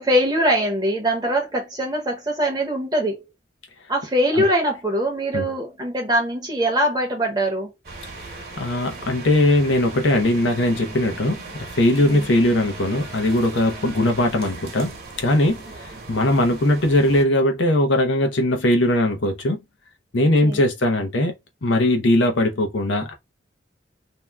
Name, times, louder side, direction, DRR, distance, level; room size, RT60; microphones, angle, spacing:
voice 1, 0.0-3.2 3.9-7.7 12.0-12.3 20.2-20.6, equal, 20° right, 0.7 m, -22 dB
sound 1, 7.8-17.2, right 3 dB, 50° right, 0.9 m, -38 dB
voice 2, 8.6-19.6 20.1-21.3 21.6-23.1, left 1 dB, 80° left, 0.8 m, -20 dB
2.8 x 2.2 x 3.4 m
head